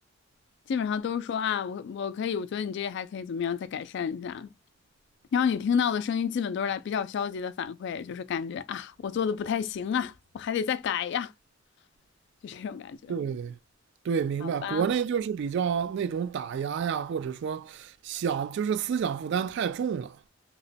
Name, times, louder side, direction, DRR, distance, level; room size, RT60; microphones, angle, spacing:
voice 1, 0.7-4.5 5.3-11.3 12.4-13.1 14.4-14.8, left 7 dB, 60° left, 0.3 m, -30 dB
voice 2, 13.1-13.6 14.0-20.2, right 7 dB, 65° right, 0.3 m, -29 dB
2.9 x 2.2 x 3.9 m
head